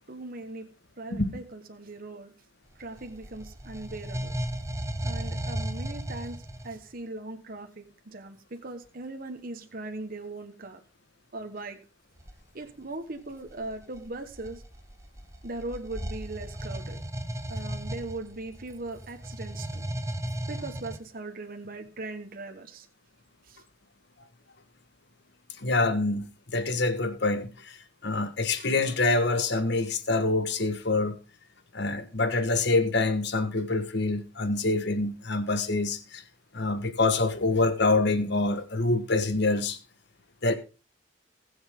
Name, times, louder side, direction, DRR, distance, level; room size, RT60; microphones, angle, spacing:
voice 1, 0.1-0.6 1.0-2.3 2.8-4.4 5.0-10.8 11.3-11.8 12.5-14.6 15.4-17.0 17.5-19.8 20.5-22.9 23.4-23.6, right 2 dB, 45° right, 1.3 m, -39 dB
sound 1, 2.7-6.8 12.2-12.4 13.2-21.0, right 1 dB, 15° right, 1.0 m, -36 dB
voice 2, 25.6-27.5 28.0-31.2 31.7-36.2 36.5-39.8 40.4-40.6, left 3 dB, 55° left, 1.4 m, -26 dB
19.5 x 7.2 x 3.6 m
head